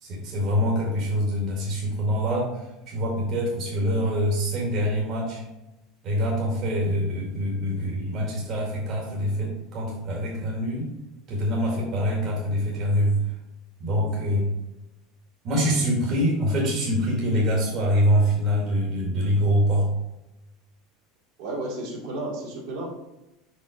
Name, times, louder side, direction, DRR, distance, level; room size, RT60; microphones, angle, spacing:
voice 1, 0.0-5.4 6.0-10.9 11.3-13.2 13.8-14.5 15.4-19.9, equal, 50° right, -3 dB, 2.0 m, -25 dB
voice 2, 21.4-22.9, right 2 dB, 70° right, -4 dB, 2.4 m, -32 dB
5.4 x 5.2 x 3.8 m, 0.94 s
hypercardioid pair, 80°, 0 cm